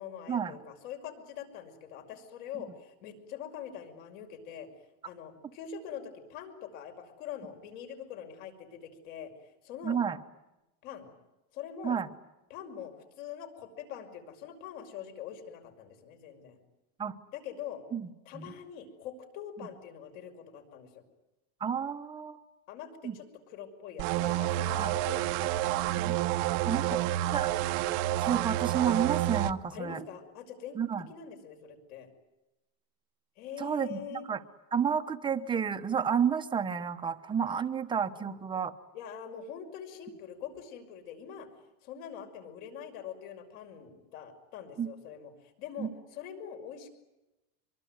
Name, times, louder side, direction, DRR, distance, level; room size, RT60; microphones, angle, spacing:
voice 1, 0.0-4.7 5.0-10.0 10.8-11.1 11.5-12.0 12.5-16.6 17.3-17.8 18.3-21.0 22.7-25.8 26.9-27.3 28.3-28.5 29.7-30.8 31.1-32.1 33.4-34.3 38.1-38.3 38.9-41.5 41.8-46.9, left 8 dB, 60° left, 5 dB, 6.2 m, -44 dB
voice 2, 9.8-10.2 11.8-12.1 17.0-17.2 17.9-18.1 18.3-18.5 21.6-22.4 23.0-23.2 24.8-24.9 25.8-26.2 26.6-26.9 27.3-27.5 28.2-30.0 30.8-31.1 33.6-34.4 34.7-38.7 44.8-44.9 45.8-45.9, right 7 dB, 10° right, 9 dB, 1.0 m, -31 dB
sound 1, 24.0-29.5, right 14 dB, 40° right, 1.0 m, -29 dB
25.0 x 23.5 x 9.5 m, 0.97 s
supercardioid pair, 170°, 45 cm